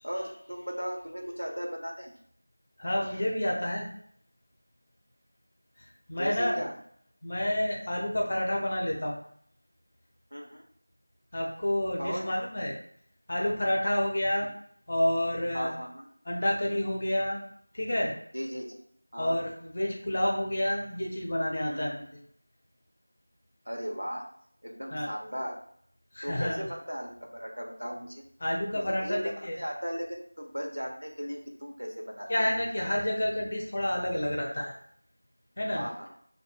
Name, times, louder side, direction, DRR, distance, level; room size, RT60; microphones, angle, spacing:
voice 1, 0.0-2.1 6.2-6.8 10.3-10.6 12.0-12.3 14.4-14.5 15.5-16.1 18.3-18.8 19.1-19.4 21.7-22.0 23.7-24.2 24.6-25.6 26.2-28.2 28.7-32.5 32.8-32.9 35.7-36.1, equal, 90° right, 1 dB, 0.7 m, -36 dB
voice 2, 2.8-3.9 5.8-6.6 7.2-9.2 11.3-12.8 13.3-14.5 14.9-15.7 16.3-17.4 17.7-18.1 19.2-22.2 24.9-25.1 26.1-26.6 28.4-29.6 32.3-34.7 35.6-35.8, left 1 dB, 30° left, -1 dB, 0.5 m, -29 dB
2.5 x 2.1 x 3.1 m, 0.64 s
figure-of-eight pair, 175°, 0 cm